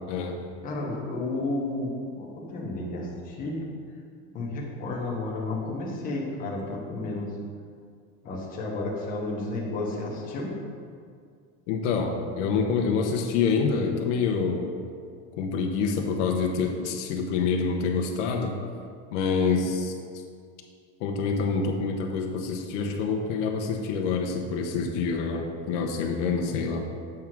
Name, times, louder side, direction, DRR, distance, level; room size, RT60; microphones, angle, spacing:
voice 1, 0.1-0.5 11.7-14.7 15.4-18.5 19.1-19.9 21.0-26.8, left 5 dB, 75° left, 2 dB, 0.9 m, -26 dB
voice 2, 0.6-3.6 4.3-7.3 8.2-10.5, left 2 dB, 25° left, -3 dB, 1.0 m, -32 dB
7.7 x 3.6 x 6.0 m, 2.2 s
cardioid pair, 180°, 36 cm